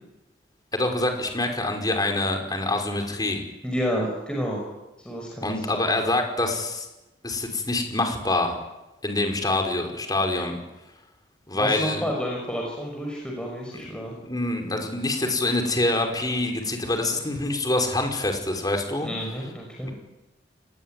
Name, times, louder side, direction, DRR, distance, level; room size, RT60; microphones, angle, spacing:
voice 1, 0.7-3.4 5.4-6.9 7.2-8.6 9.0-10.6 11.5-12.0 13.7-19.1, left 2 dB, 25° left, 3 dB, 5.3 m, -26 dB
voice 2, 3.6-4.7 5.0-5.6 11.5-14.1 19.0-19.9, equal, 5° left, -1 dB, 5.9 m, -30 dB
29.5 x 20.0 x 9.3 m, 1.0 s
head